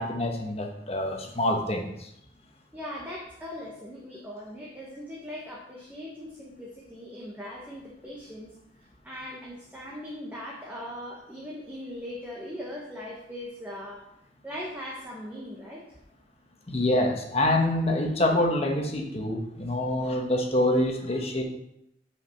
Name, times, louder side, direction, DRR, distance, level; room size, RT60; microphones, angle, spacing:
voice 1, 0.0-2.1 16.7-21.4, left 1 dB, 35° left, 2 dB, 1.2 m, -26 dB
voice 2, 2.7-8.5 9.0-14.0 14.4-16.0, equal, 10° right, -4 dB, 1.1 m, -40 dB
5.8 x 5.1 x 6.4 m, 0.77 s
head